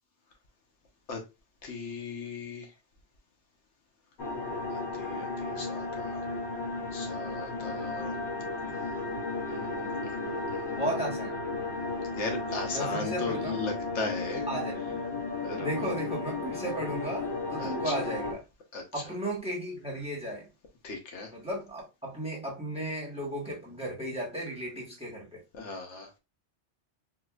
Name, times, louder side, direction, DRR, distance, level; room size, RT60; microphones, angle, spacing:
voice 1, 1.6-2.7 4.7-6.2 6.9-8.2 9.5-11.1 12.1-14.5 15.4-15.9 17.6-17.9 18.7-19.0 20.8-21.3 25.5-26.1, left 3 dB, 90° left, 1.2 m, -37 dB
sound 1, 4.2-18.3, left 3 dB, 65° left, 1.2 m, -34 dB
voice 2, 10.7-11.4 12.7-13.6 14.5-15.0 15.6-18.4 18.9-20.5 21.3-25.4, right 1 dB, 5° right, 1.2 m, -35 dB
4.1 x 2.5 x 2.3 m
omnidirectional pair, 1.2 m